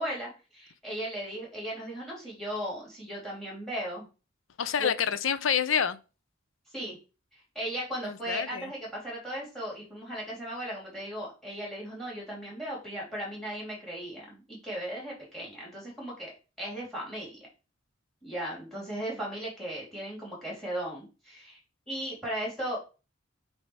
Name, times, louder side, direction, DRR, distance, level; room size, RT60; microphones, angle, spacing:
voice 1, 0.0-4.0 4.8-4.9 6.7-7.0 7.5-17.4 18.2-21.6 21.9-22.8, right 1 dB, ahead, 3.2 m, -37 dB
voice 2, 4.6-6.0 8.0-8.7 19.0-19.1, left 8 dB, 75° left, 0.5 m, -28 dB
8.2 x 2.8 x 4.7 m
head